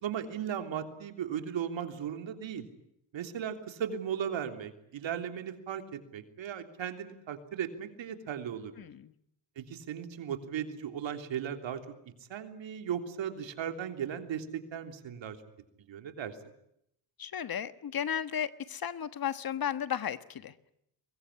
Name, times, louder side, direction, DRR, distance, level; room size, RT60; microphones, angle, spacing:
voice 1, 0.0-2.7 3.1-8.7 9.6-11.8 12.3-15.4 15.9-16.4, right 8 dB, 70° right, 6 dB, 3.4 m, -37 dB
voice 2, 8.8-9.1 17.2-20.5, left 9 dB, 50° left, 12 dB, 1.4 m, -34 dB
24.0 x 21.5 x 9.9 m, 0.76 s
cardioid pair, 95°, 47 cm